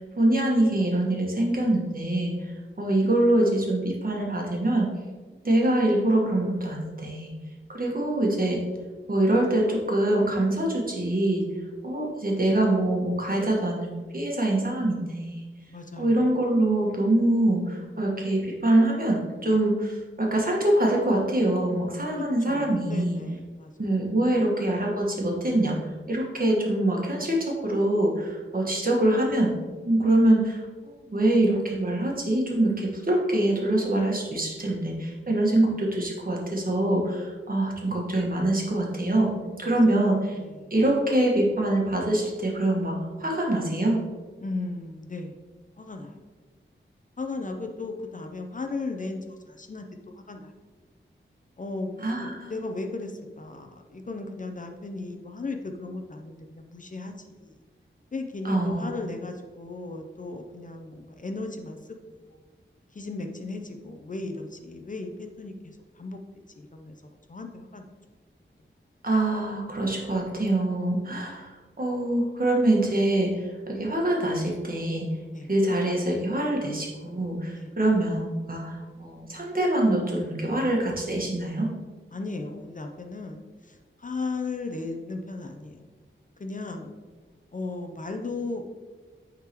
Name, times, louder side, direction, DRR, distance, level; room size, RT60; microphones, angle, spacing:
voice 1, 0.0-4.9 5.4-7.3 7.7-8.6 9.1-11.5 11.8-15.5 16.0-23.2 23.8-25.8 26.1-29.5 29.8-39.3 39.6-40.4 40.7-44.0 52.0-52.5 58.4-58.9 69.0-75.1 75.5-81.7, right 1 dB, 45° right, -2 dB, 1.4 m, -24 dB
voice 2, 15.7-16.2 22.2-23.9 24.2-24.4 39.6-40.7 44.4-45.3 45.8-46.2 47.2-50.5 51.6-57.6 58.1-61.8 62.2-62.4 62.9-66.2 66.6-67.8 75.3-75.5 77.5-77.7 82.1-85.9 86.4-86.9 87.5-88.6, left 3 dB, 40° left, 4 dB, 0.5 m, -36 dB
9.0 x 3.7 x 2.9 m, 1.3 s
wide cardioid pair, 85°, 21 cm